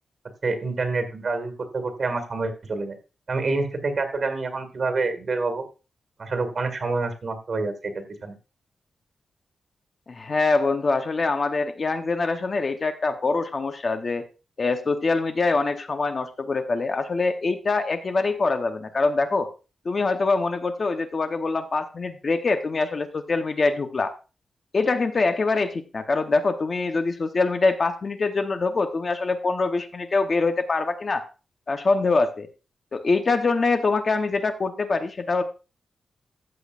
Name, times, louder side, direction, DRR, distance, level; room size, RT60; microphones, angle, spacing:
voice 1, 0.4-3.0 3.3-5.6 6.2-8.3, right 3 dB, 45° right, 8 dB, 1.8 m, -27 dB
voice 2, 10.1-14.2 14.6-19.5 19.8-24.1 24.7-31.2 31.7-32.5 32.9-35.4, left 3 dB, 35° left, 7 dB, 0.8 m, -24 dB
13.5 x 8.1 x 2.4 m, 0.31 s
wide cardioid pair, 170°, 0 cm